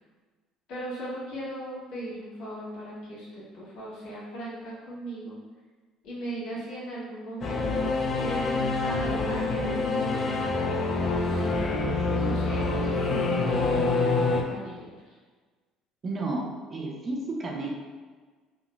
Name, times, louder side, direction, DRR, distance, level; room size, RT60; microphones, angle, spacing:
voice 1, 0.7-5.4 6.0-7.9 8.2-10.3 11.3-15.2, right 1 dB, 70° left, -7 dB, 1.4 m, -37 dB
Singing / Musical instrument, 7.4-14.4, left 3 dB, 50° left, 0.4 m, -26 dB
voice 2, 16.0-17.7, right 2 dB, 40° right, 0 dB, 0.5 m, -32 dB
3.6 x 2.3 x 2.3 m, 1.4 s
supercardioid pair, 80°, 0 cm